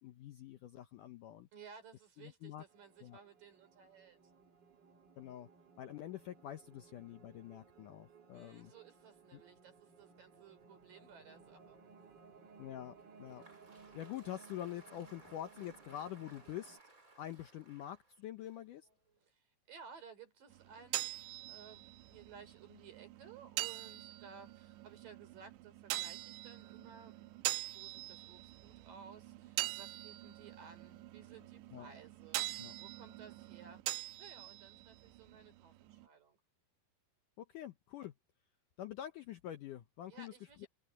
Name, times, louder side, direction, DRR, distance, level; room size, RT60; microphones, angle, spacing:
voice 1, 0.0-1.5 2.2-2.6 3.0-3.2 5.2-5.5 5.8-8.7 9.3-9.4 12.6-13.4 13.9-16.8 17.2-18.9 31.7-31.9 32.6-32.7 37.4-38.1 38.8-40.3 40.6-40.7, left 12 dB, 85° left, 1.8 m, -46 dB
voice 2, 1.5-4.2 8.3-11.8 19.3-27.3 27.7-32.4 32.8-33.8 34.2-36.4 40.1-40.7, right 6 dB, 50° right, 5.6 m, -57 dB
sound 1, 2.7-16.8, right 5 dB, 70° right, 1.0 m, -61 dB
Applause, 13.0-19.3, right 2 dB, 20° right, 4.2 m, -63 dB
sound 2, 20.5-36.1, right 17 dB, 90° right, 3.1 m, -44 dB
omnidirectional pair, 5.0 m